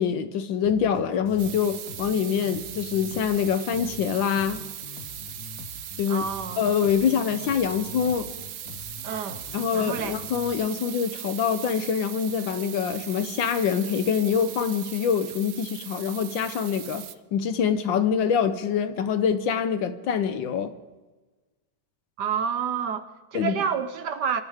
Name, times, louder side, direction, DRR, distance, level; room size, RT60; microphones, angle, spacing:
voice 1, 0.0-4.6 6.0-6.3 6.6-8.3 9.5-17.0 17.3-20.7 23.3-23.6, left 7 dB, 70° left, 1.6 m, -25 dB
Bass guitar, 0.6-10.5, left 6 dB, 50° left, 1.3 m, -44 dB
sound 1, 1.4-17.1, right 10 dB, 90° right, 0.7 m, -39 dB
voice 2, 6.1-6.6 9.0-9.4 9.7-10.2 22.2-24.4, right 7 dB, 65° right, 1.3 m, -29 dB
24.0 x 13.5 x 3.6 m
omnidirectional pair, 2.2 m